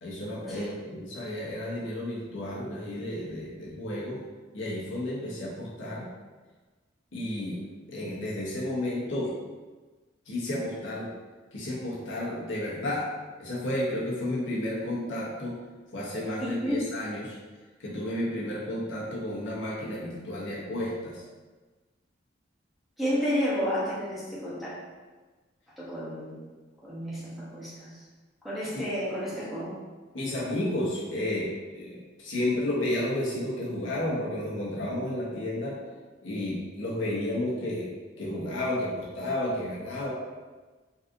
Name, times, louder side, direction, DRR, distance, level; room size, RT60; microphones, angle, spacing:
voice 1, 0.0-4.2 4.5-6.1 7.1-7.6 7.9-9.3 10.3-11.1 11.5-13.1 13.4-15.5 15.9-17.4 17.8-21.2 28.7-28.8 30.1-35.8 36.2-37.9 38.2-40.1, left 1 dB, 80° left, -6 dB, 1.0 m, -32 dB
voice 2, 16.4-16.8 23.0-24.7 25.8-26.4 26.8-28.0 28.4-29.8, equal, ahead, -10 dB, 0.8 m, -31 dB
3.9 x 2.7 x 2.6 m, 1.3 s
head